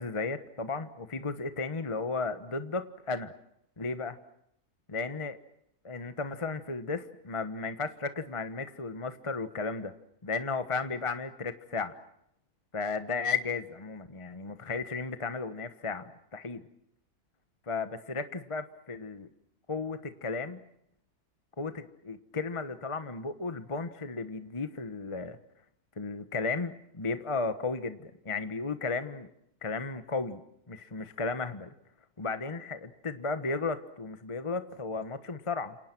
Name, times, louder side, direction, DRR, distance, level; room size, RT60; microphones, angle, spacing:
voice 1, 0.0-3.3 3.8-4.2 4.9-5.4 5.8-9.9 10.2-11.9 12.7-16.6 17.7-19.3 19.7-20.6 21.6-25.4 26.0-29.3 29.6-30.4 30.7-31.7 32.2-35.8, left 4 dB, 20° left, 10 dB, 1.2 m, -34 dB
29.5 x 28.0 x 6.1 m, 0.75 s
omnidirectional pair, 1.7 m